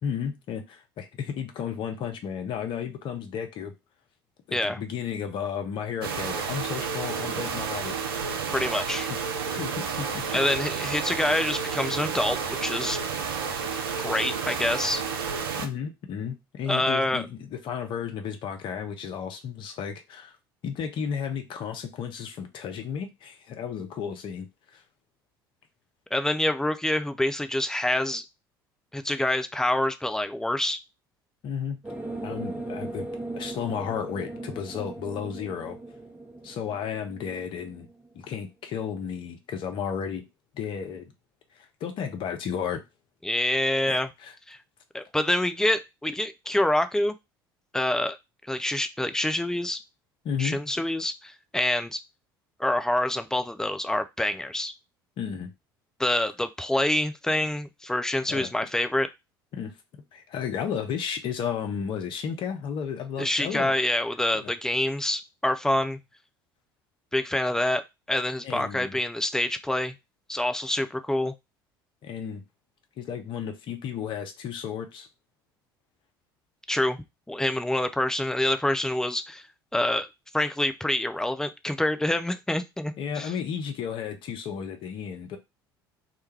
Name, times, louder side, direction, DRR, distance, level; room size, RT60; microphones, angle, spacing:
voice 1, 0.0-3.7 4.5-7.9 8.8-9.2 9.5-10.2 15.6-20.4 20.6-24.5 24.7-24.8 31.4-31.8 32.2-33.1 33.4-35.8 36.4-37.9 38.1-40.3 40.5-41.1 41.8-42.8 43.9-44.3 50.2-50.6 55.2-55.5 58.3-58.5 59.5-59.7 60.1-63.7 64.3-64.5 68.4-69.0 72.0-72.4 73.0-75.1 83.0-85.4, left 7 dB, 45° left, 0.6 m, -33 dB
sound 1, 6.0-15.7, right 6 dB, 75° right, 0.4 m, -31 dB
voice 2, 8.5-9.1 10.3-13.0 14.0-15.0 16.7-17.2 26.1-28.2 28.9-30.8 43.2-44.1 44.5-44.6 44.9-47.2 47.7-48.2 48.5-49.8 50.4-52.0 52.6-54.7 56.0-59.1 63.2-66.0 67.1-67.8 68.1-69.9 70.3-71.3 76.7-77.0 77.3-79.4 79.7-80.1 80.3-83.3, left 1 dB, 5° left, 0.3 m, -26 dB
sound 2, 31.8-38.2, right 2 dB, 15° right, 0.7 m, -38 dB
2.2 x 2.2 x 3.1 m
figure-of-eight pair, 65°, 12 cm